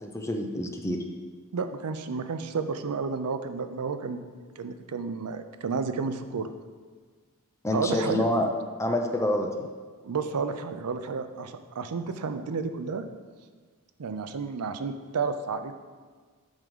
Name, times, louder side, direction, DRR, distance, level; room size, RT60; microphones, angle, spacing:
voice 1, 0.0-1.0 7.6-8.5 8.8-9.7, left 1 dB, 15° left, 3 dB, 0.6 m, -27 dB
voice 2, 1.5-4.3 4.6-6.5 7.7-8.3 10.0-13.0 14.0-15.7, right 5 dB, 90° right, 9 dB, 0.5 m, -31 dB
8.8 x 3.7 x 5.3 m, 1.5 s
head